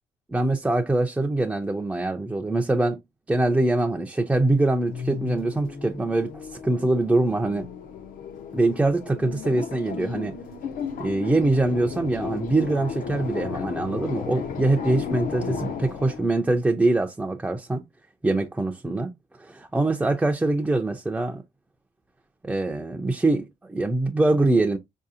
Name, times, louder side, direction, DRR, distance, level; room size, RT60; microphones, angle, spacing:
voice 1, 0.3-3.0 3.3-7.7 8.5-10.3 11.0-17.8 18.2-19.1 19.4-21.4 22.4-24.8, right 2 dB, 5° right, 0.4 m, -23 dB
sound 1, 4.9-16.4, left 6 dB, 60° left, 0.6 m, -34 dB
4.7 x 2.7 x 2.4 m
cardioid pair, 140°, 16 cm